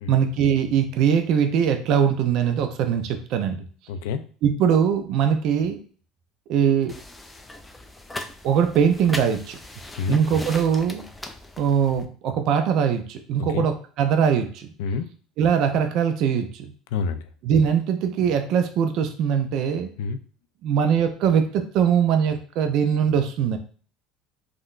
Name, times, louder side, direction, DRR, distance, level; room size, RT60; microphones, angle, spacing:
voice 1, 0.1-3.6 4.4-5.8 6.5-6.9 8.4-9.6 10.1-11.0 11.6-14.7 15.4-16.7 17.4-19.9 20.6-23.6, right 7 dB, 60° right, 6 dB, 0.4 m, -21 dB
voice 2, 3.9-4.2 10.0-10.2 13.5-13.7 14.8-15.1 16.9-17.3 20.0-20.2, left 5 dB, 90° left, 9 dB, 0.3 m, -27 dB
sound 1, 6.9-12.1, left 2 dB, 10° left, 0.3 m, -39 dB
3.7 x 2.2 x 2.4 m, 0.42 s
cardioid pair, 135°, 0 cm